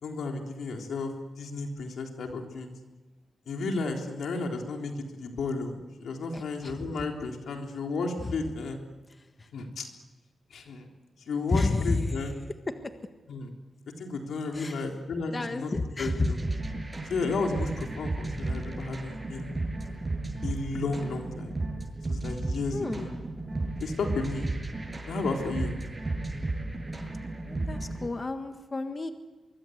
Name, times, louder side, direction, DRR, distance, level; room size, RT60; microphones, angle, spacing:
voice 1, 0.0-2.7 3.5-8.8 9.5-9.9 10.5-10.9 11.3-12.3 13.3-13.5 14.0-15.7 16.0-16.4 17.1-19.6 20.4-21.6 22.1-23.1 23.8-24.5 25.1-25.8, left 3 dB, 85° left, 2 dB, 3.7 m, -33 dB
voice 2, 6.3-6.9 8.2-8.3 9.4-9.5 11.5-12.2 12.7-12.9 14.5-14.8 15.3-16.3 22.7-23.2 27.4-29.1, left 3 dB, 35° left, 7 dB, 1.6 m, -31 dB
sound 1, 16.1-28.1, right 2 dB, 25° right, 7.8 m, -34 dB
24.5 x 23.5 x 8.0 m, 1.2 s
cardioid pair, 80°, 0 cm